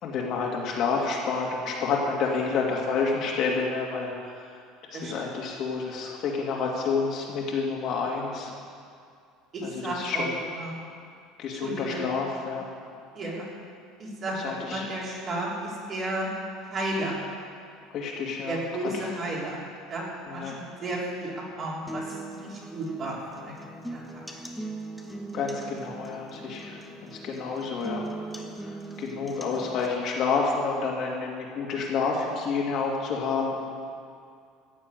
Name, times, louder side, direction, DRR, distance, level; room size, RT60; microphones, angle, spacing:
voice 1, 0.0-4.5 4.9-8.5 9.6-10.3 11.4-12.6 14.4-14.9 17.9-18.6 18.9-19.0 20.3-20.6 25.3-28.1 28.5-33.7, left 4 dB, 40° left, -2 dB, 2.4 m, -29 dB
voice 2, 9.5-10.2 10.6-10.7 11.6-12.0 13.1-13.5 14.0-16.3 16.7-17.2 18.5-19.6 19.9-23.6 23.9-24.3, right 1 dB, 30° right, -5 dB, 3.5 m, -33 dB
sound 1, 21.9-29.9, right 2 dB, ahead, 1.0 m, -40 dB
15.5 x 7.3 x 9.2 m, 2.3 s
cardioid pair, 165°, 0 cm